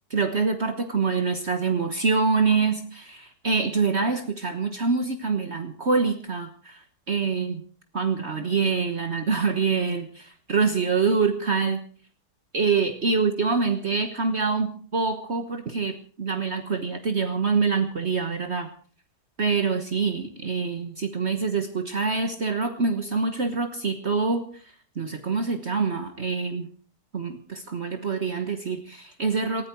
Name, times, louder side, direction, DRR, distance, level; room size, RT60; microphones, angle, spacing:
voice 1, 0.1-6.8 7.1-7.6 7.9-11.8 12.5-18.7 19.4-24.4 25.0-26.7 27.1-29.7, right 4 dB, 45° right, 7 dB, 1.5 m, -25 dB
19.5 x 14.5 x 4.6 m, 0.43 s
omnidirectional pair, 1.7 m